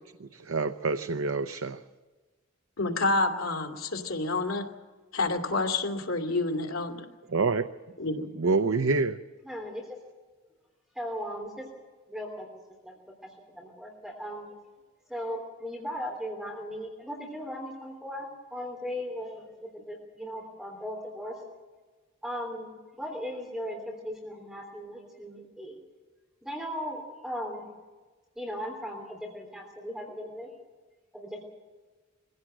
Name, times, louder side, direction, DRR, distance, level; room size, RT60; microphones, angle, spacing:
voice 1, 0.2-1.8 7.3-7.7 8.4-9.2, right 4 dB, 75° right, 9 dB, 0.7 m, -27 dB
voice 2, 2.8-4.6 5.1-7.1 8.0-8.3, left 2 dB, 85° left, 4 dB, 2.7 m, -28 dB
voice 3, 9.4-10.0 10.9-11.7 12.1-12.5 12.8-14.5 15.1-21.4 22.2-25.8 26.4-27.7 28.3-30.5 31.1-31.4, equal, 5° right, 0 dB, 3.3 m, -37 dB
23.0 x 16.5 x 7.8 m, 1.3 s
head